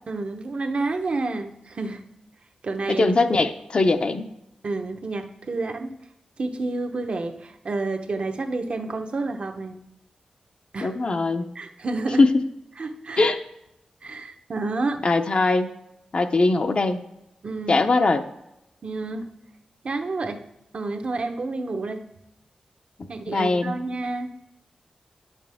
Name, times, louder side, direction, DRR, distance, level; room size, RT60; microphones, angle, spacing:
voice 1, 0.1-2.0 2.6-3.1 4.6-5.9 6.4-9.8 10.7-10.9 11.5-12.2 12.8-13.3 14.0-15.0 17.4-17.9 18.8-19.3 19.8-20.4 20.7-22.1 23.1-24.3, right 3 dB, 60° right, 4 dB, 0.9 m, -29 dB
voice 2, 2.9-4.3 10.8-11.4 12.2-12.4 13.2-13.4 15.0-15.7 16.1-17.0 17.7-18.2 23.3-23.7, left 3 dB, 50° left, 7 dB, 0.6 m, -21 dB
9.8 x 7.2 x 3.5 m, 0.86 s
wide cardioid pair, 80°, 2 cm